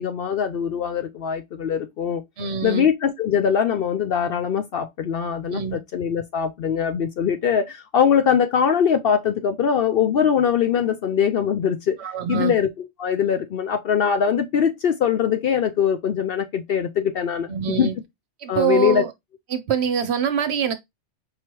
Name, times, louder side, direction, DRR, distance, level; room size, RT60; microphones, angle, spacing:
voice 1, 0.0-2.2 2.6-12.0 12.3-17.9 18.5-19.0, left 8 dB, 60° left, 0.6 m, -22 dB
voice 2, 2.4-2.8 5.5-5.8 12.0-12.5 17.5-17.9 18.4-19.1 19.5-20.7, right 7 dB, 65° right, 0.9 m, -24 dB
4.7 x 3.0 x 3.0 m
omnidirectional pair, 1.3 m